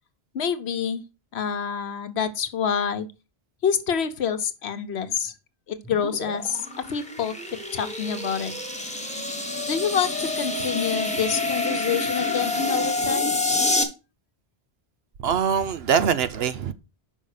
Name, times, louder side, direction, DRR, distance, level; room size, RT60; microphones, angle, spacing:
voice 1, 0.3-1.0 1.3-3.1 3.6-5.3 5.7-7.3 7.7-8.5 9.7-13.4, left 7 dB, 75° left, 1.1 m, -27 dB
sound 1, 5.8-13.8, left 2 dB, 5° left, 1.2 m, -27 dB
voice 2, 15.2-16.7, right 7 dB, 70° right, 0.9 m, -23 dB
5.4 x 5.4 x 6.5 m
omnidirectional pair, 1.1 m